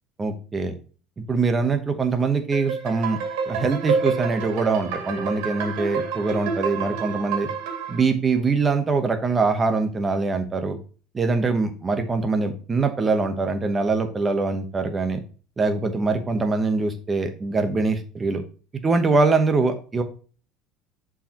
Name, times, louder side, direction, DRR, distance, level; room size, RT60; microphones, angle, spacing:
voice 1, 0.2-0.7 1.3-3.2 3.5-7.5 7.9-10.8 11.1-15.2 15.6-18.4 18.8-20.0, right 4 dB, 15° right, 7 dB, 1.0 m, -23 dB
sound 1, 2.5-8.0, right 5 dB, 90° right, 2.5 m, -28 dB
11.0 x 4.8 x 3.0 m, 0.38 s
cardioid pair, 175°, 0 cm